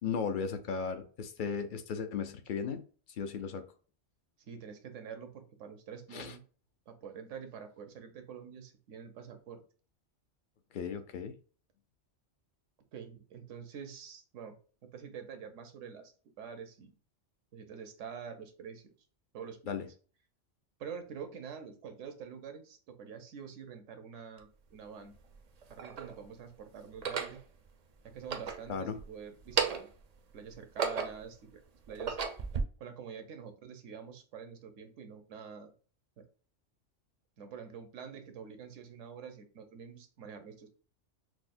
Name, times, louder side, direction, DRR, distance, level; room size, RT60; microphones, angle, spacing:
voice 1, 0.0-2.8 3.2-3.6 6.1-6.3 10.7-11.4 19.7-19.9 28.7-29.0, left 6 dB, 60° left, 8 dB, 0.5 m, -36 dB
voice 2, 4.4-6.4 6.9-9.6 12.9-14.6 14.8-16.9 17.5-18.9 19.3-19.8 20.8-25.1 25.7-27.4 28.0-29.9 30.3-31.6 31.9-32.2 32.8-35.7 36.2-36.3 37.4-40.7, right 7 dB, 90° right, 7 dB, 1.1 m, -46 dB
sound 1, 24.4-24.5 25.3-26.1 26.9-27.4 28.1-29.1 29.4-30.0 30.5-31.3 31.8-32.6, right 6 dB, 60° right, 0.4 m, -34 dB
6.0 x 2.0 x 2.5 m, 0.39 s
omnidirectional pair, 1.2 m